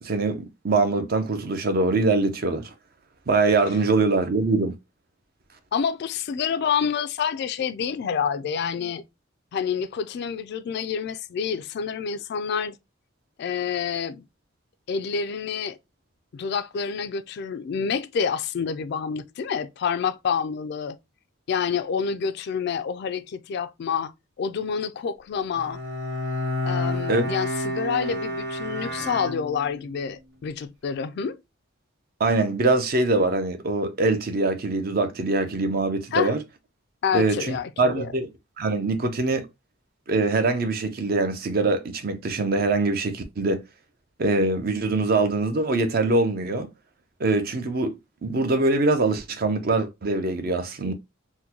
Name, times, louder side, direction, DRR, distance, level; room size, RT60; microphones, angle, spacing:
voice 1, 0.0-2.7 3.3-4.7 27.1-27.2 32.2-36.4 37.1-38.3 38.6-39.5 40.1-43.6 44.2-46.7 47.2-48.0 48.2-50.9, right 3 dB, 50° right, 0.6 m, -23 dB
voice 2, 5.7-9.0 9.5-12.8 13.4-14.3 14.9-15.8 16.3-21.0 21.5-24.1 24.4-25.8 26.6-31.4 36.1-36.3 37.0-38.1, left 6 dB, 55° left, 0.3 m, -28 dB
Bowed string instrument, 25.5-29.9, left 1 dB, 80° right, 1.1 m, -30 dB
3.8 x 2.1 x 2.8 m
head